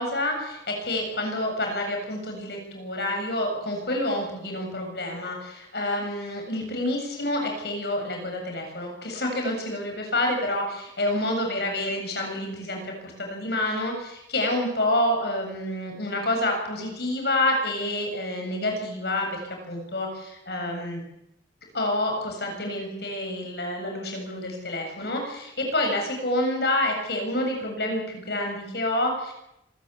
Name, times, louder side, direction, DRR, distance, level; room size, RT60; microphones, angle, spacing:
voice 1, 0.0-19.4 19.7-21.0 21.7-29.3, left 1 dB, 60° left, 2 dB, 7.8 m, -28 dB
26.0 x 15.0 x 8.5 m, 0.84 s
head